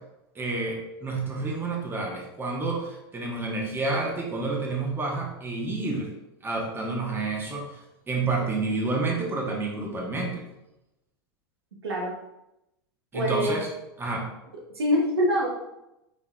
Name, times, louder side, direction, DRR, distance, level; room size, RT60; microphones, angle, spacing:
voice 1, 0.3-6.1 6.4-7.8 8.1-10.4 13.1-13.7 14.0-14.3, right 3 dB, 20° right, -1 dB, 1.2 m, -29 dB
voice 2, 13.1-13.6 14.7-15.6, equal, 85° right, -1 dB, 0.9 m, -24 dB
6.1 x 3.5 x 2.3 m, 0.90 s
hypercardioid pair, 90°, 13 cm